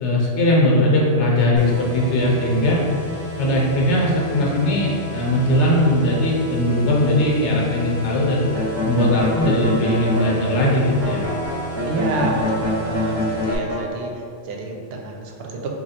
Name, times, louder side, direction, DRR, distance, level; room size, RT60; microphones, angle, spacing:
voice 1, 0.0-2.8 3.4-8.4 8.8-11.2, left 1 dB, 80° left, -4 dB, 1.0 m, -19 dB
sound 1, 1.6-13.6, equal, 40° left, 0.6 m, -32 dB
sound 2, 8.5-10.3 11.0-13.8, left 1 dB, 30° right, 0.6 m, -25 dB
voice 2, 11.8-13.2 13.4-15.7, right 2 dB, 65° right, 1 dB, 0.7 m, -28 dB
3.0 x 2.3 x 4.2 m, 2.4 s
omnidirectional pair, 1.2 m